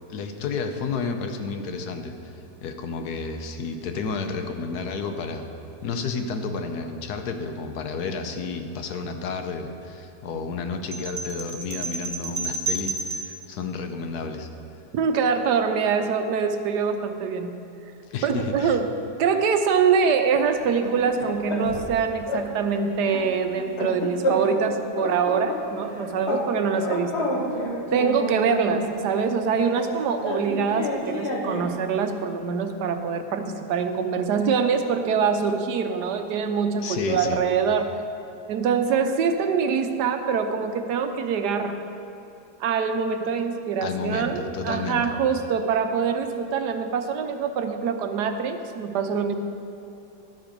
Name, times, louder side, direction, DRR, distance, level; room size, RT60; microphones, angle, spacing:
voice 1, 0.1-2.3 2.6-5.5 5.8-14.5 18.1-18.8 36.8-37.4 43.8-45.1, left 4 dB, 70° left, 6 dB, 1.3 m, -31 dB
sound 1, 10.9-13.4, right 3 dB, 25° right, 1.1 m, -31 dB
voice 2, 14.9-17.6 18.2-18.9 19.2-27.3 27.9-37.9 38.5-41.8 42.6-49.3, right 6 dB, 75° right, 7 dB, 1.3 m, -24 dB
sound 2, 20.6-21.9 22.3-22.5 22.8-24.7 24.9-26.5 26.8-28.9 29.8-31.7, left 1 dB, 45° left, 1.3 m, -29 dB
12.5 x 7.7 x 5.1 m, 2.9 s
omnidirectional pair, 1.8 m